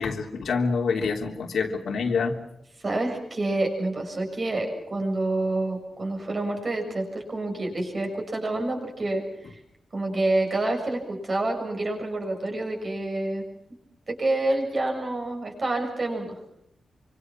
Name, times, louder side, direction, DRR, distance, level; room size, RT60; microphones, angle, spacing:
voice 1, 0.0-2.4, left 5 dB, 70° left, 2 dB, 3.3 m, -26 dB
voice 2, 2.8-9.6 9.9-13.5 14.1-16.3, right 2 dB, 30° right, 2 dB, 7.0 m, -28 dB
27.0 x 25.5 x 6.1 m, 0.77 s
wide cardioid pair, 155°, 0 cm